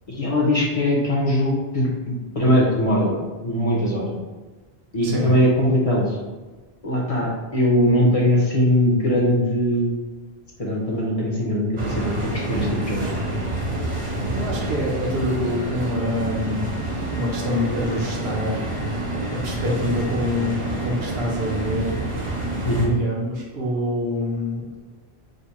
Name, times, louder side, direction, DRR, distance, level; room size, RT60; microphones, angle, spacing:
voice 1, 0.1-3.1 3.4-4.2 4.9-6.2 6.8-10.0 10.6-13.0 22.6-22.9, equal, 35° left, -3 dB, 0.9 m, -21 dB
sound 1, 11.8-22.9, right 2 dB, 35° right, 0.8 m, -27 dB
voice 2, 14.3-16.6 17.1-18.6 19.3-21.9 22.8-24.6, left 1 dB, 75° right, -3 dB, 1.1 m, -26 dB
5.2 x 2.1 x 4.1 m, 1.3 s
omnidirectional pair, 1.1 m